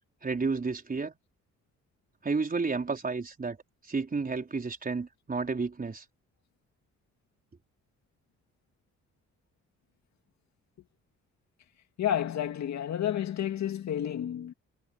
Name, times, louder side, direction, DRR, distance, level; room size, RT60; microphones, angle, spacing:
voice 1, 0.2-1.1 2.2-3.6 3.8-6.0, right 4 dB, 30° right, 4.6 m, -31 dB
voice 2, 12.0-14.5, left 10 dB, 65° left, 2.4 m, -30 dB
cardioid pair, 90°, 30 cm